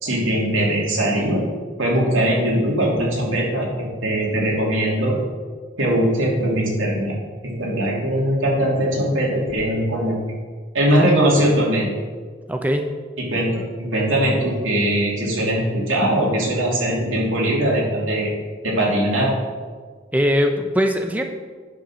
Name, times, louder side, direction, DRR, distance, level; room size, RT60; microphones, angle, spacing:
voice 1, 0.0-1.4 1.8-5.2 5.8-7.2 7.4-10.2 10.7-11.9 13.2-18.3 18.6-19.3, right 1 dB, 90° right, -3 dB, 2.8 m, -20 dB
voice 2, 12.5-12.8 20.1-21.2, equal, 10° right, 4 dB, 0.5 m, -20 dB
10.0 x 5.3 x 6.3 m, 1.5 s
head